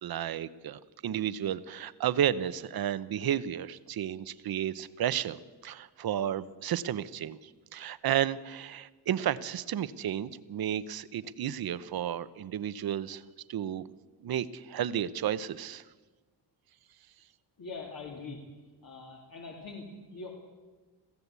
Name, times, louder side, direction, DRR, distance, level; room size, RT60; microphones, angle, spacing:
voice 1, 0.0-13.2 13.5-13.9 14.2-15.8, right 10 dB, 60° right, 15 dB, 0.9 m, -32 dB
voice 2, 17.6-18.4 18.8-20.3, left 4 dB, 55° left, -1 dB, 3.2 m, -43 dB
22.0 x 15.5 x 8.3 m, 1.3 s
wide cardioid pair, 150°, 41 cm